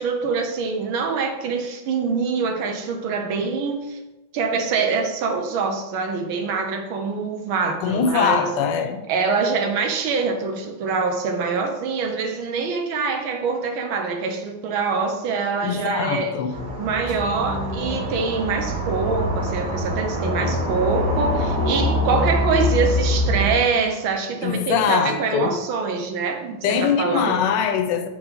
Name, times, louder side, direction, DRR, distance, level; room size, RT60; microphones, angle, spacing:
voice 1, 0.0-4.0 4.3-8.5 9.1-16.3 16.8-27.4, right 5 dB, 85° right, 1.6 m, -24 dB
voice 2, 7.8-9.1 15.6-16.6 24.4-25.6 26.6-28.1, left 7 dB, 75° left, 1.1 m, -22 dB
sound 1, 16.5-23.5, left 1 dB, 55° right, 1.7 m, -24 dB
7.0 x 3.1 x 5.3 m
omnidirectional pair, 2.2 m